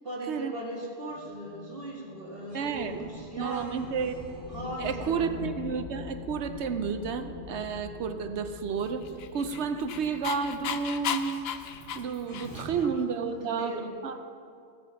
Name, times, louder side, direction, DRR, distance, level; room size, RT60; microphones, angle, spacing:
voice 1, 0.0-3.8 4.5-5.3 13.2-14.0, right 1 dB, 55° right, -2 dB, 2.1 m, -38 dB
sound 1, 1.1-12.8, right 2 dB, 50° left, 3.6 m, -51 dB
voice 2, 2.5-3.1 3.4-4.1 4.8-9.0 9.3-11.5 11.9-13.8 14.0-14.2, right 6 dB, 75° right, 9 dB, 0.9 m, -31 dB
sound 2, 3.1-13.1, left 7 dB, 80° left, 1.2 m, -44 dB
Dog, 9.0-12.8, left 8 dB, 65° left, 0.8 m, -35 dB
16.5 x 6.7 x 5.7 m, 2.4 s
omnidirectional pair, 1.2 m